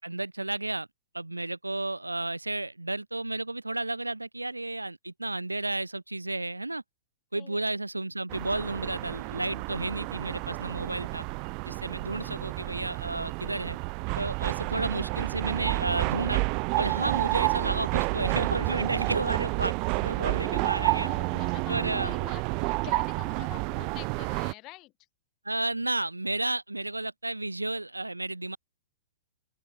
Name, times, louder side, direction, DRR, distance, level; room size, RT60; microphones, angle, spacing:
voice 1, 0.0-0.9 1.1-6.8 7.3-11.2 11.7-13.8 14.2-16.4 16.8-21.1 21.7-22.1 25.4-28.6, right 2 dB, 85° right, 3.8 m, -32 dB
voice 2, 7.3-7.8 12.2-12.4 20.4-21.7 22.0-24.9, left 20 dB, 35° left, 7.0 m, -46 dB
sound 1, 8.3-24.5, right 35 dB, 40° right, 0.3 m, -30 dB
open air
figure-of-eight pair, 105°, 0 cm